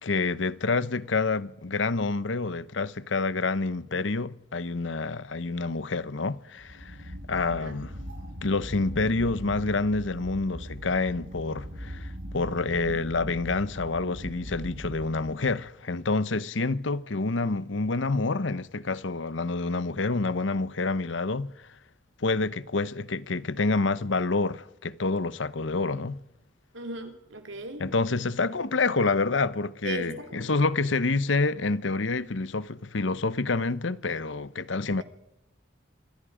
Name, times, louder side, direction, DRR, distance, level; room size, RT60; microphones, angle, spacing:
voice 1, 0.0-7.0 7.3-7.9 8.4-21.5 22.2-26.2 27.8-35.0, left 3 dB, 80° left, 0.9 m, -28 dB
sound 1, 6.6-15.7, equal, 65° right, 7.1 m, -40 dB
voice 2, 26.7-27.8 29.8-30.5, right 2 dB, 90° right, 3.5 m, -37 dB
26.0 x 23.5 x 5.0 m
head